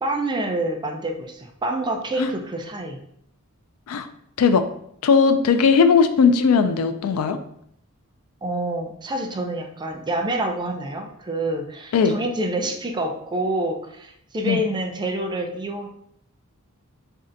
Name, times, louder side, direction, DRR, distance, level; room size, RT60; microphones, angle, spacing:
voice 1, 0.0-3.0 8.4-15.9, right 1 dB, 20° right, 3 dB, 0.4 m, -27 dB
voice 2, 5.0-7.4 11.9-12.2 14.4-14.6, left 5 dB, 85° left, 8 dB, 0.4 m, -18 dB
3.2 x 2.7 x 3.8 m, 0.70 s
head